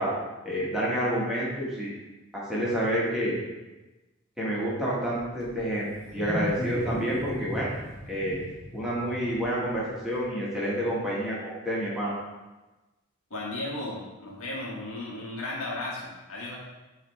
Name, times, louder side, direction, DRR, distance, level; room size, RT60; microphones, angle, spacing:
voice 1, 0.0-1.9 2.3-3.4 4.4-7.7 8.1-8.4 8.7-12.2, equal, 5° right, -8 dB, 1.5 m, -29 dB
Wild animals, 5.2-10.2, left 1 dB, 35° left, 1.1 m, -36 dB
voice 2, 13.3-16.6, left 2 dB, 80° left, -4 dB, 1.5 m, -35 dB
8.8 x 3.3 x 3.4 m, 1.1 s
head